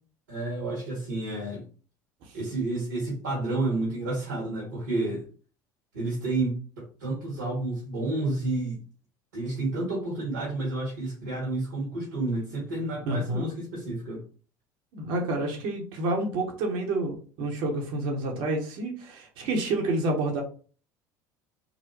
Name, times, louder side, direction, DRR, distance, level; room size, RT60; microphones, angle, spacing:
voice 1, 0.3-1.6 2.3-5.2 5.9-8.8 9.3-14.2, right 2 dB, 85° right, -5 dB, 1.5 m, -30 dB
voice 2, 13.1-13.5 14.9-20.4, right 2 dB, 65° right, 0 dB, 1.1 m, -29 dB
3.9 x 2.1 x 3.1 m, 0.39 s
hypercardioid pair, 70°, 9 cm